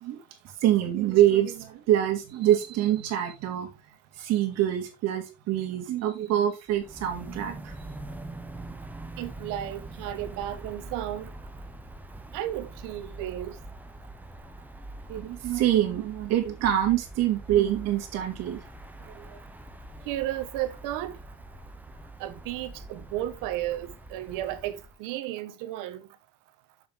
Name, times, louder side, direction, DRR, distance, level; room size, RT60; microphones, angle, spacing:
voice 1, 0.6-3.7 4.2-7.7 15.1-18.6 19.1-19.4, right 12 dB, 45° right, 2.6 m, -25 dB
sound 1, 6.7-25.0, right 2 dB, 5° right, 0.8 m, -44 dB
voice 2, 9.2-11.3 12.3-13.6 20.1-21.2 22.2-26.1, right 13 dB, 60° right, 1.3 m, -33 dB
7.1 x 7.1 x 3.7 m
cardioid pair, 155°, 35 cm